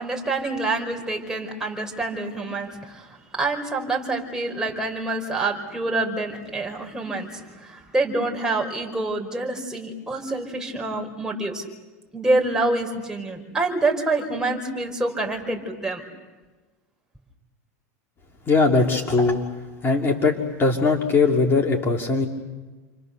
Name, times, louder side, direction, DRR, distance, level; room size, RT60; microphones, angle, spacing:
voice 1, 0.0-11.6 12.1-16.0, right 2 dB, 5° right, 0 dB, 5.0 m, -27 dB
voice 2, 18.5-19.4 19.8-22.3, left 3 dB, 25° left, 1 dB, 2.9 m, -20 dB
29.5 x 25.0 x 6.8 m, 1.3 s
hypercardioid pair, 110°, 9 cm